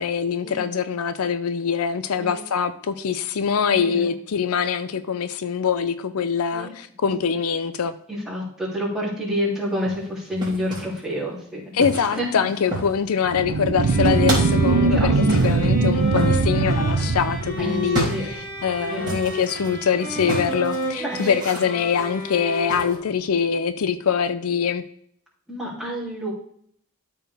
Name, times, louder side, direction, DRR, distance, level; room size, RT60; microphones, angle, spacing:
voice 1, 0.0-7.9 11.7-15.1 15.4-24.8, left 7 dB, 75° left, 12 dB, 0.5 m, -24 dB
voice 2, 3.7-4.1 6.5-6.7 8.1-11.6 12.2-12.3 14.9-15.1 15.4-15.6 17.6-18.3 18.9-19.1 21.0-21.3 25.5-26.3, equal, 5° right, -6 dB, 2.8 m, -29 dB
sound 1, 9.7-11.0 11.8-13.1 13.4-14.6 15.3-23.0, right 1 dB, 20° right, 3.0 m, -32 dB
sound 2, 13.3-18.2, right 3 dB, 75° right, 0.6 m, -21 dB
sound 3, 13.8-23.3, equal, 35° left, 1.6 m, -32 dB
13.0 x 4.5 x 3.4 m, 0.64 s
head